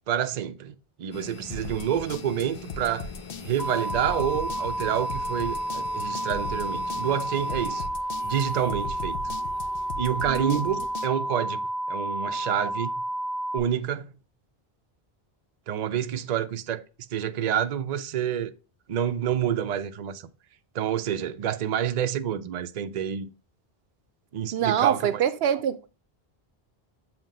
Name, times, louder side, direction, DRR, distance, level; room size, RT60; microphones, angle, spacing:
voice 1, 0.1-3.1 3.4-7.8 8.2-9.4 10.0-13.0 13.5-14.1 15.7-16.8 17.1-18.5 18.9-20.3 20.7-23.3 24.3-25.2, right 9 dB, 50° right, 0.6 m, -28 dB
sound 1, 1.1-7.9, left 6 dB, 40° left, 0.5 m, -44 dB
sound 2, 1.5-11.1, left 4 dB, 65° left, 0.9 m, -39 dB
sound 3, 3.6-13.6, right 1 dB, 20° left, 1.6 m, -31 dB
voice 2, 10.3-10.6 24.5-25.9, right 9 dB, 80° right, 0.8 m, -25 dB
7.4 x 2.9 x 5.1 m
omnidirectional pair, 1.0 m